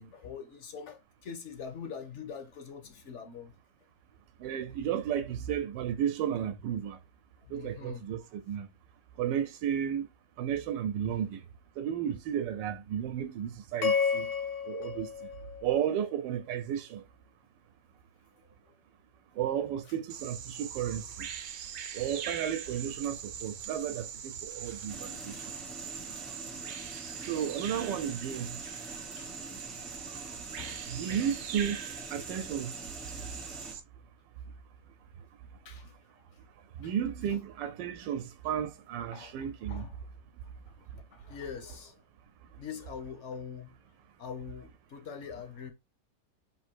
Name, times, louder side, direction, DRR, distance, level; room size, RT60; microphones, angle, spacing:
voice 1, 0.0-3.5 7.4-8.1 11.1-11.3 18.6-18.8 28.8-29.5 30.6-30.8 32.2-32.3 33.1-33.2 35.6-35.9 36.3-36.4 36.8-36.9 37.3-37.4 39.1-40.0 40.7-42.0 42.6-43.8 44.2-45.7, left 6 dB, 60° left, 0.8 m, -44 dB
voice 2, 4.4-7.0 7.5-8.7 9.2-10.1 10.4-11.4 11.8-14.3 14.7-15.1 15.6-17.0 19.4-21.3 21.9-25.3 27.3-28.6 30.9-31.8 32.1-32.7 36.8-39.9, right 9 dB, 85° right, 1.2 m, -33 dB
sound 1, 13.8-16.2, left 6 dB, 85° left, 1.5 m, -31 dB
Bird vocalization bird call bird song, 20.1-33.8, right 8 dB, 65° right, 1.0 m, -42 dB
sound 2, 24.9-33.8, equal, ahead, 0.4 m, -46 dB
3.7 x 2.5 x 4.3 m
omnidirectional pair, 1.9 m